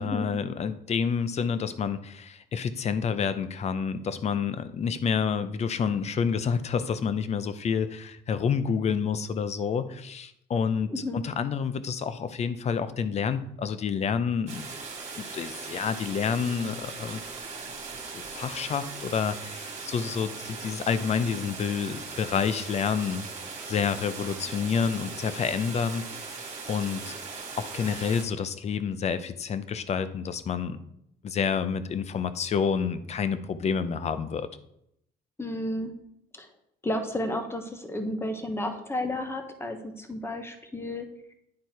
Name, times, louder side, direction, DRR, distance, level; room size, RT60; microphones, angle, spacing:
voice 1, 0.0-14.6 15.2-17.2 18.1-23.2 23.7-26.4 26.7-27.2 27.6-30.8 31.2-34.5, left 6 dB, 40° left, 13 dB, 0.6 m, -29 dB
sound 1, 14.5-28.2, right 4 dB, 40° right, 2.1 m, -39 dB
voice 2, 35.4-35.9 36.3-36.5 36.8-41.1, left 1 dB, 15° left, 6 dB, 1.1 m, -32 dB
9.5 x 4.4 x 4.7 m, 0.76 s
cardioid pair, 110°, 17 cm